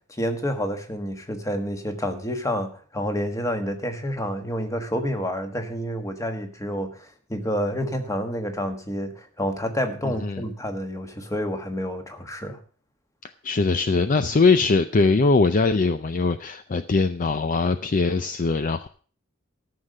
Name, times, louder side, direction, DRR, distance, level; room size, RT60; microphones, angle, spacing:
voice 1, 0.1-12.6, equal, 15° left, 6 dB, 1.4 m, -29 dB
voice 2, 10.0-10.4 13.4-18.9, left 3 dB, 40° left, 11 dB, 0.5 m, -21 dB
13.5 x 6.5 x 6.5 m, 0.43 s
head